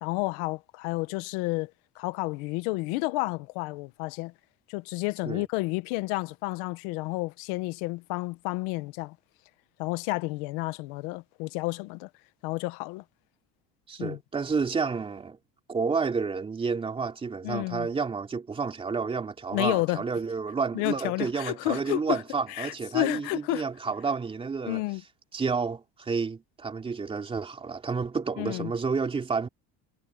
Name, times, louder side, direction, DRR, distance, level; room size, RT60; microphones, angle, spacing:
voice 1, 0.0-4.3 4.7-9.1 9.8-12.1 12.4-13.0 14.0-14.2 17.4-17.9 19.5-20.0 20.7-22.2 22.5-23.6 24.6-25.0 28.4-28.7, left 22 dB, 85° left, 1.1 m, -31 dB
voice 2, 13.9-15.4 15.7-24.8 25.3-29.5, right 5 dB, 15° right, 3.0 m, -30 dB
cardioid pair, 175°, 34 cm